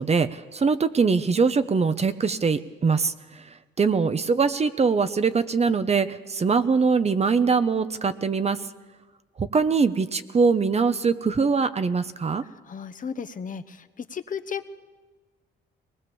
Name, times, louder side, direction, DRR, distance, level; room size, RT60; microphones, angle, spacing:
voice 1, 0.0-3.1 3.8-8.6 9.4-12.4, right 5 dB, 30° right, 12 dB, 1.0 m, -22 dB
voice 2, 12.4-14.7, left 6 dB, 40° left, 9 dB, 1.0 m, -35 dB
22.5 x 19.5 x 7.1 m, 1.4 s
cardioid pair, 90°, 20 cm